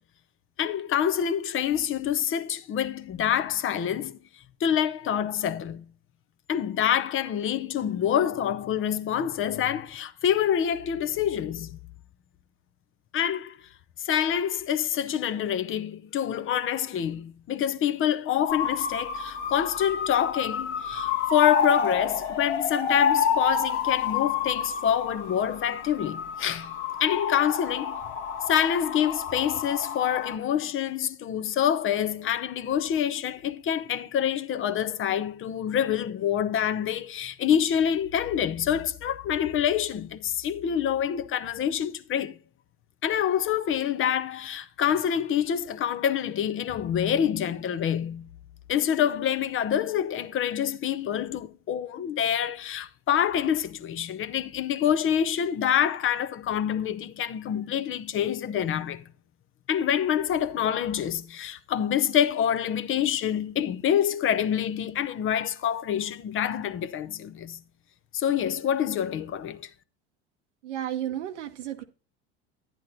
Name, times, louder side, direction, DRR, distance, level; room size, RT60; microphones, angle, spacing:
voice 1, 0.6-4.2 4.6-5.8 6.5-11.8 13.1-13.6 14.0-26.7 27.0-28.0 28.5-42.4 43.0-48.3 48.7-59.0 59.7-67.6 68.1-69.6, left 9 dB, 35° left, 0.7 m, -26 dB
sound 1, 18.5-30.4, left 6 dB, 90° left, 1.4 m, -29 dB
voice 2, 70.6-71.8, right 11 dB, 90° right, 1.0 m, -32 dB
10.5 x 10.5 x 2.7 m
hypercardioid pair, 90°, 34 cm